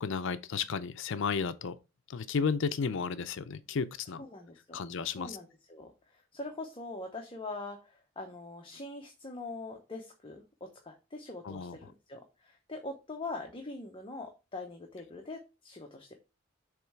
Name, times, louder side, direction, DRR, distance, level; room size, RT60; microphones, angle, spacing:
voice 1, 0.0-1.8 2.1-4.2 4.7-5.4 11.4-11.9, left 5 dB, 65° left, 0.5 m, -33 dB
voice 2, 4.2-4.8 5.2-16.1, left 2 dB, 25° left, 0.8 m, -43 dB
7.1 x 3.1 x 4.5 m
head